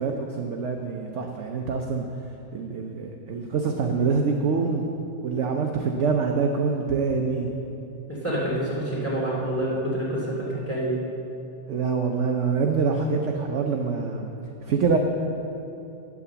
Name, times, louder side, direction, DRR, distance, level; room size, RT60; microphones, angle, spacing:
voice 1, 0.0-2.1 2.5-4.8 5.2-7.5 11.7-14.3 14.6-15.0, right 5 dB, 60° right, 2 dB, 0.8 m, -25 dB
voice 2, 8.1-11.0, right 1 dB, 10° left, -7 dB, 2.7 m, -27 dB
8.9 x 8.5 x 6.9 m, 2.8 s
omnidirectional pair, 1.9 m